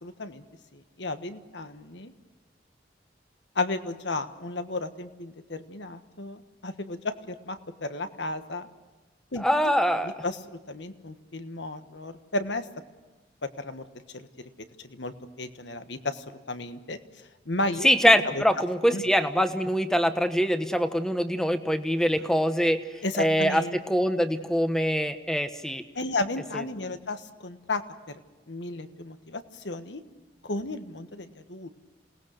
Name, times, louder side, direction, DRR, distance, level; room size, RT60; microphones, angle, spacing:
voice 1, 0.0-0.4 0.7-2.1 3.5-8.7 9.3-9.7 10.0-12.7 13.4-13.8 14.1-14.5 14.8-17.0 17.4-17.9 18.2-18.4 18.9-19.0 23.0-23.8 25.9-27.8 28.5-30.0 30.4-31.7, left 2 dB, 75° left, 9 dB, 1.4 m, -33 dB
voice 2, 9.4-10.1 17.8-22.8 23.1-25.8, equal, 5° left, 8 dB, 1.1 m, -23 dB
28.0 x 19.0 x 6.6 m, 1.2 s
head